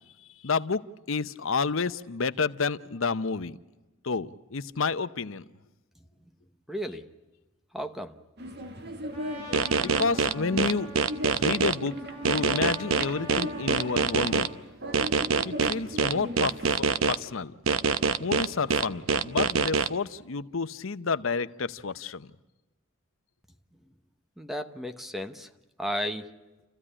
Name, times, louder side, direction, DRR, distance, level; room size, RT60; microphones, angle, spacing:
voice 1, 0.4-0.8 1.1-3.6 4.0-5.4 9.7-10.9 11.3-12.0 12.2-14.5 15.4-17.5 18.2-22.3, left 4 dB, 70° left, 13 dB, 0.8 m, -30 dB
voice 2, 6.7-7.1 7.7-8.1 24.4-25.5 25.8-26.3, equal, ahead, 8 dB, 1.0 m, -33 dB
sound 1, 8.4-16.7, equal, 55° right, 1.8 m, -38 dB
Trumpet, 9.1-14.6, left 2 dB, 30° right, 5.1 m, -45 dB
sound 2, 9.5-11.7 12.2-14.5 14.9-17.2 17.7-19.9, right 5 dB, 80° right, 0.8 m, -24 dB
29.5 x 15.0 x 9.9 m, 1.1 s
head